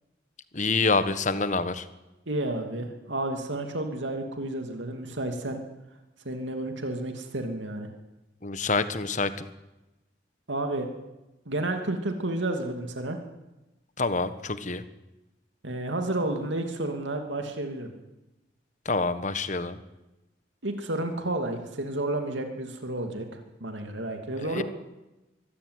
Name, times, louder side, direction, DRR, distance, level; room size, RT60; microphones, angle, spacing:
voice 1, 0.5-1.8 8.4-9.4 14.0-14.8 18.8-19.8 24.4-24.6, left 3 dB, 40° left, 12 dB, 1.4 m, -27 dB
voice 2, 2.3-5.6 6.2-7.9 10.5-10.9 11.5-13.2 15.6-17.9 20.6-23.2 23.6-24.6, right 2 dB, 90° right, 5 dB, 2.7 m, -31 dB
23.5 x 15.0 x 9.6 m, 1.0 s
head